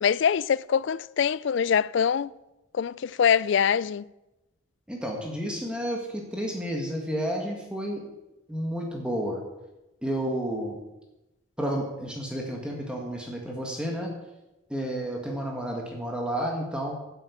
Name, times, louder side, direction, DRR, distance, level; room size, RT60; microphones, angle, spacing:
voice 1, 0.0-2.3 2.7-4.0, left 7 dB, 55° left, 0.3 m, -24 dB
voice 2, 4.9-8.0 8.5-9.4 10.0-10.8 11.6-14.1 14.7-16.9, equal, 5° right, 1.7 m, -31 dB
11.0 x 8.1 x 8.3 m
head